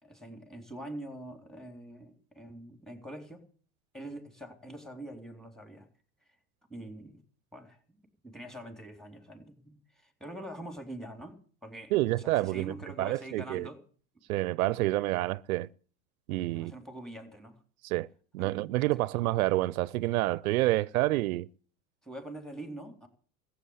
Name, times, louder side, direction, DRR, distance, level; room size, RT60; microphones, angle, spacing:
voice 1, 0.0-3.4 3.9-5.9 6.7-7.2 7.5-13.8 16.5-17.6 18.4-18.5 19.0-19.1 22.0-23.1, right 1 dB, ahead, 3.8 m, -44 dB
voice 2, 11.9-13.7 14.3-15.7 16.3-16.7 17.8-18.1 18.3-21.5, right 17 dB, 80° right, 0.6 m, -28 dB
15.0 x 8.3 x 9.8 m
hypercardioid pair, 95°, 42 cm